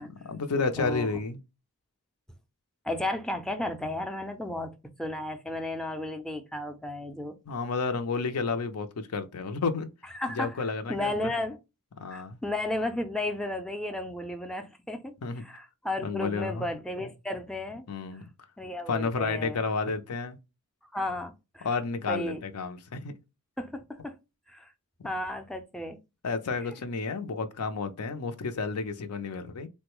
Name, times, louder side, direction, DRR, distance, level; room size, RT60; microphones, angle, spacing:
voice 1, 0.0-1.4 7.5-9.9 10.3-11.1 12.0-12.4 15.2-15.4 16.0-16.7 17.9-18.2 18.9-20.4 21.6-23.1 26.2-29.7, left 4 dB, 85° left, 0.5 m, -31 dB
voice 2, 0.8-1.1 2.8-4.7 5.0-7.4 10.1-11.6 12.1-17.9 18.1-18.2 18.6-19.6 20.9-21.7 22.1-22.4 23.6-24.1 24.5-24.7 25.0-26.0, left 1 dB, 5° left, 0.4 m, -34 dB
3.7 x 2.1 x 2.9 m
head